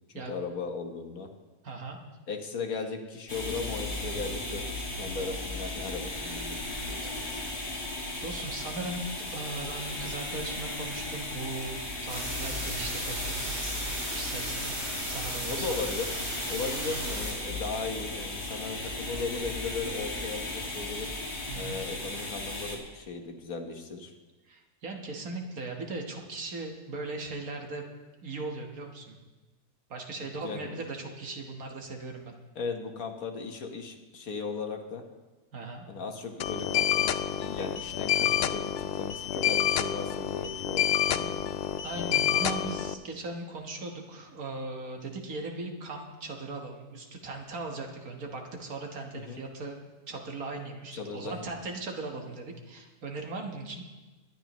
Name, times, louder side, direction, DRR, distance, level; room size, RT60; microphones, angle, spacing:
voice 1, 0.1-1.3 2.3-7.5 15.4-16.2 16.5-21.1 21.5-24.1 30.4-30.7 32.5-35.0 35.9-37.1 37.4-41.5 49.1-49.4 50.9-51.5, left 4 dB, 65° left, 4 dB, 1.6 m, -37 dB
voice 2, 1.6-2.0 6.8-7.1 8.2-13.7 14.1-14.7 15.1-15.8 21.5-21.8 24.4-27.9 28.2-29.2 29.9-32.3 35.5-35.8 41.8-53.8, right 3 dB, 65° right, 2 dB, 1.8 m, -38 dB
sound 1, 3.3-22.8, left 2 dB, 35° left, 2.2 m, -36 dB
sound 2, 12.1-17.3, right 1 dB, 40° right, 4.7 m, -36 dB
sound 3, 36.4-42.9, left 10 dB, 85° left, 0.5 m, -28 dB
22.5 x 10.5 x 3.0 m, 1.2 s
omnidirectional pair, 1.7 m